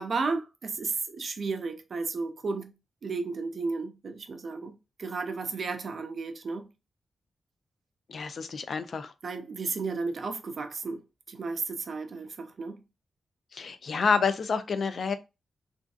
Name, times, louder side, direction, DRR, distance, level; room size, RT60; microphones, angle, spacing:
voice 1, 0.0-2.7 3.0-6.6 9.2-11.0 11.3-12.8, right 4 dB, 55° right, 0.4 m, -33 dB
voice 2, 8.1-9.1 13.5-15.1, left 5 dB, 60° left, 0.3 m, -28 dB
2.5 x 2.3 x 2.3 m
cardioid pair, 100°, 0 cm